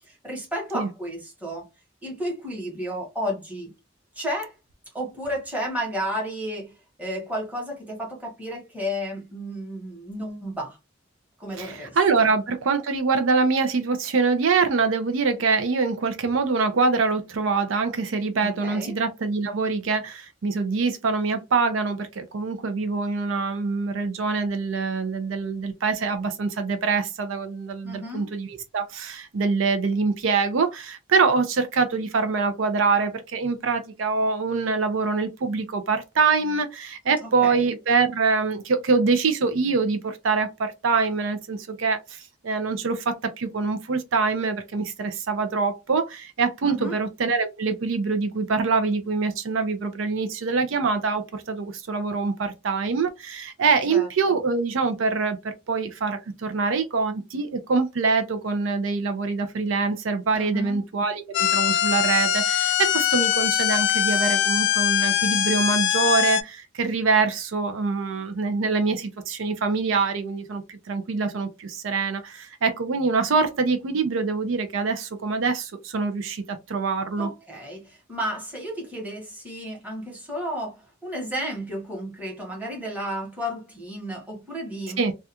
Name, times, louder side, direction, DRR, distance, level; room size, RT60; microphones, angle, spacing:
voice 1, 0.1-1.7 2.0-3.7 4.1-4.5 4.9-6.7 7.0-10.8 11.4-12.0 18.4-19.0 27.8-28.3 37.2-37.7 46.6-47.0 53.9-54.4 60.3-60.8 77.2-85.0, equal, 10° right, 1.0 m, -32 dB
voice 2, 11.6-55.4 55.7-77.3 85.0-85.1, right 4 dB, 70° right, 0.5 m, -24 dB
sound 1, 61.3-66.4, left 10 dB, 60° left, 0.3 m, -22 dB
2.4 x 2.2 x 2.7 m
head